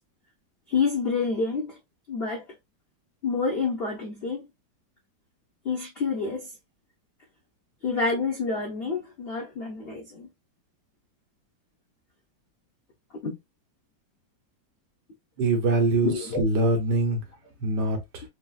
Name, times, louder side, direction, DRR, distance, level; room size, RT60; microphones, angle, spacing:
voice 1, 0.7-1.8 2.1-2.4 3.2-4.5 5.6-6.5 7.8-10.3 13.2-13.4 16.0-16.4, left 4 dB, 80° left, 0.5 m, -28 dB
voice 2, 15.4-17.2 17.6-18.2, right 2 dB, 70° right, 1.4 m, -24 dB
3.9 x 2.1 x 2.3 m
omnidirectional pair, 2.0 m